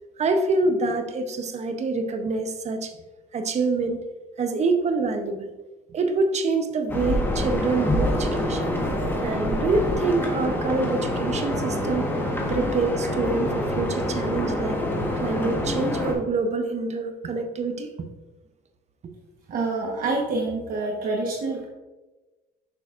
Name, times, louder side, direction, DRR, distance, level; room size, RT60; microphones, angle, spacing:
voice 1, 0.2-2.9 3.3-4.0 4.4-5.5 5.9-8.7 9.2-12.1 12.5-14.8 15.2-17.9 19.0-19.1, right 3 dB, 40° right, 7 dB, 0.7 m, -26 dB
sound 1, 6.9-16.1, left 1 dB, 10° left, 1.3 m, -26 dB
voice 2, 19.5-21.7, right 3 dB, 60° right, -2 dB, 1.2 m, -27 dB
6.6 x 5.7 x 2.5 m, 1.2 s
cardioid pair, 110°, 17 cm